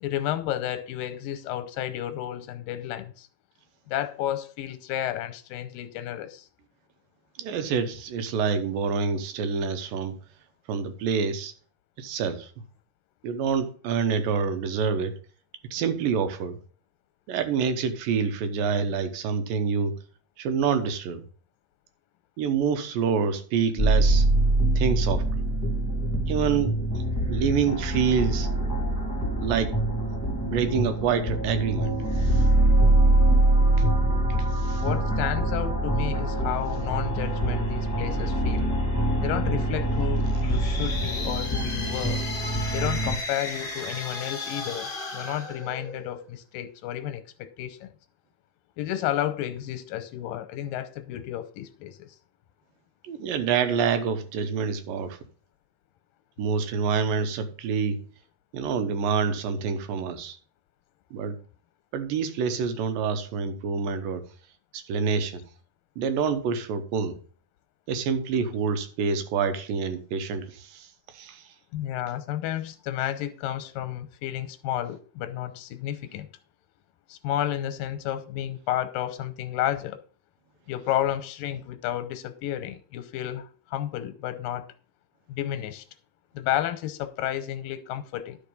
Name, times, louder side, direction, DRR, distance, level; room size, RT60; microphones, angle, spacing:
voice 1, 0.0-3.3 3.9-6.5 34.8-38.7 39.2-42.2 42.7-47.9 48.8-52.1 71.7-76.3 77.1-80.0 80.7-84.7 85.3-85.8 86.3-88.4, left 12 dB, 90° left, 2.5 m, -31 dB
voice 2, 7.4-10.2 10.7-11.5 12.0-12.5 13.2-15.1 15.7-16.6 17.3-19.9 20.4-21.2 22.4-24.3 24.8-25.3 26.3-26.7 27.3-28.5 29.4-29.8 30.2-32.5 34.5-34.8 38.2-38.3 53.0-55.2 56.4-58.0 58.5-60.4 61.1-61.4 61.9-64.3 64.7-65.4 66.0-67.2 67.9-70.9 71.1-71.4, right 6 dB, 80° right, 2.7 m, -27 dB
sound 1, 23.8-43.2, right 1 dB, 5° left, 1.4 m, -24 dB
sound 2, 40.3-46.3, left 3 dB, 40° left, 0.7 m, -35 dB
12.0 x 5.1 x 5.4 m
omnidirectional pair, 4.0 m